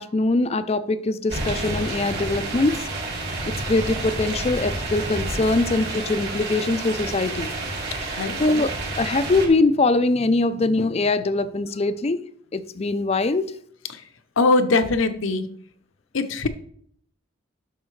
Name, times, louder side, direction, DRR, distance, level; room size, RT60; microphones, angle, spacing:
voice 1, 0.0-2.9 3.5-7.5 8.0-8.7 9.0-12.2 12.5-13.5, left 2 dB, 30° left, 13 dB, 0.4 m, -22 dB
sound 1, 1.3-9.5, right 2 dB, 50° right, 2.3 m, -29 dB
voice 2, 8.2-8.5 14.4-15.5 16.1-16.5, left 3 dB, 75° left, 10 dB, 0.8 m, -21 dB
11.0 x 6.5 x 3.2 m, 0.64 s
head